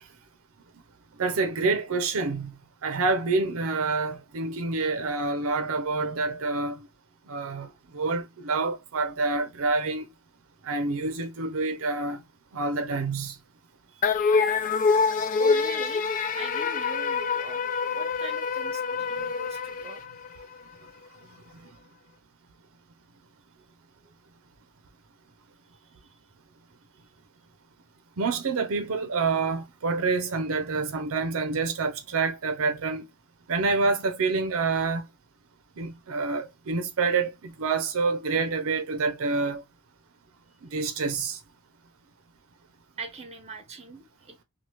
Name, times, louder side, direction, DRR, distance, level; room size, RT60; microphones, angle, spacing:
voice 1, 1.2-2.5 2.8-6.9 7.3-7.7 7.9-10.1 10.6-12.2 12.5-13.4 28.2-33.0 33.5-35.1 35.8-39.6 40.6-41.4, right 4 dB, 65° right, 0.6 m, -27 dB
voice 2, 13.9-14.4 15.4-16.1 16.3-17.6 17.9-20.0 43.0-44.4, right 4 dB, 30° right, 0.7 m, -41 dB
sound 1, 14.0-20.6, left 5 dB, 35° left, 0.3 m, -26 dB
3.0 x 2.3 x 3.1 m
head